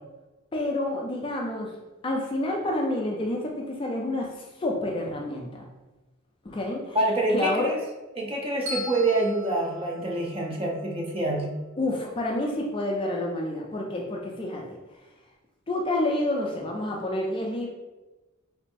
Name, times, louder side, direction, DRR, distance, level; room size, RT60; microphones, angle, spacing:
voice 1, 0.5-1.8 2.0-5.6 6.4-7.0 7.3-7.7 11.8-14.8 15.7-17.7, left 1 dB, 25° left, 0 dB, 0.3 m, -29 dB
voice 2, 6.9-7.8 8.2-11.5, right 2 dB, 25° right, -1 dB, 0.6 m, -26 dB
Bell, 8.7-10.8, left 1 dB, 65° right, 1.3 m, -39 dB
3.2 x 3.2 x 2.5 m, 1.1 s
head